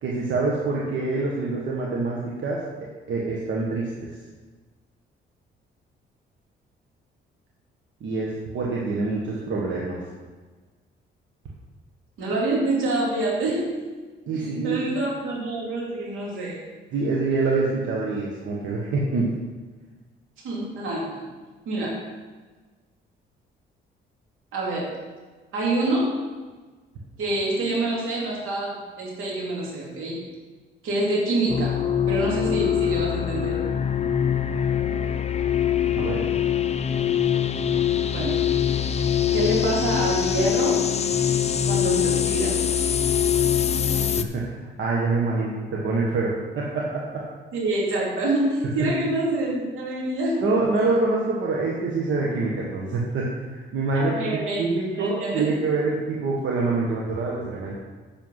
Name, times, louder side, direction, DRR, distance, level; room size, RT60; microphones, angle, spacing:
voice 1, 0.0-2.6 3.1-4.1 8.0-10.0 14.3-15.0 16.9-19.3 36.0-36.2 44.2-47.2 48.8-48.9 50.4-54.1 54.6-57.8, right 3 dB, 70° right, -3 dB, 1.6 m, -26 dB
voice 2, 12.2-13.8 14.3-16.6 20.4-21.2 21.6-22.0 24.5-25.0 25.5-26.2 27.2-30.2 30.8-31.8 32.1-33.6 38.1-38.5 39.3-40.9 41.6-42.6 47.5-50.5 53.9-54.6 54.9-55.6, right 2 dB, 90° right, -4 dB, 3.2 m, -26 dB
sound 1, 31.5-44.2, left 9 dB, 35° left, 0.6 m, -23 dB
8.0 x 6.8 x 5.7 m, 1.4 s
cardioid pair, 90°, 20 cm